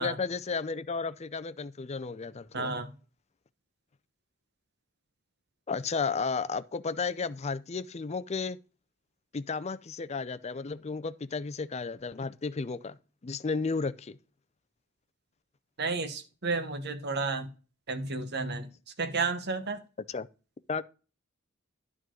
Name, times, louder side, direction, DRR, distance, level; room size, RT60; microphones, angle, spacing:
voice 1, 0.0-2.8 5.7-8.6 9.3-13.0 13.2-14.2 20.1-20.3 20.7-20.8, left 4 dB, 30° left, 0.5 m, -33 dB
voice 2, 2.5-2.9 15.8-17.5 17.9-18.7 19.0-19.8, right 3 dB, 55° right, 1.1 m, -32 dB
11.0 x 5.2 x 3.8 m
head